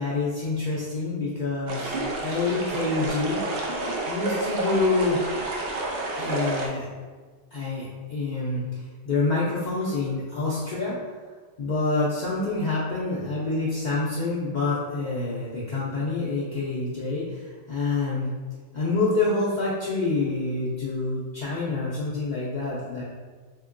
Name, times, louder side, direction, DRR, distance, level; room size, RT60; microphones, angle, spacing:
voice 1, 0.0-3.4 4.1-5.2 6.2-6.9 7.5-11.0 11.6-18.3 18.7-23.0, left 3 dB, 50° left, -7 dB, 0.6 m, -27 dB
sound 1, 1.7-6.7, right 2 dB, 65° right, 0.8 m, -29 dB
3.6 x 2.8 x 2.5 m, 1.5 s
omnidirectional pair, 1.1 m